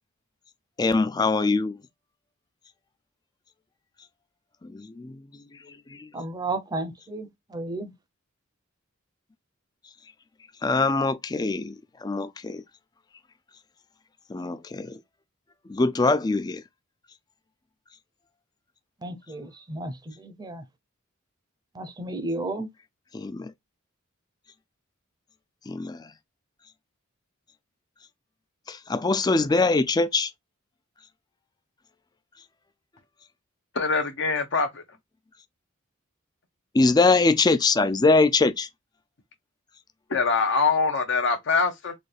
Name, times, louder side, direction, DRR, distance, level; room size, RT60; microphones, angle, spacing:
voice 1, 0.8-1.8 4.6-6.1 10.6-12.6 14.3-15.0 15.7-16.6 23.1-23.5 25.7-26.1 28.7-30.3 36.7-38.7, left 3 dB, 20° left, 0.3 m, -23 dB
voice 2, 6.1-7.9 19.0-20.7 21.7-22.7, right 2 dB, 20° right, 0.6 m, -33 dB
voice 3, 33.7-34.8 40.1-41.9, left 4 dB, 60° left, 0.8 m, -23 dB
4.1 x 2.3 x 3.2 m
head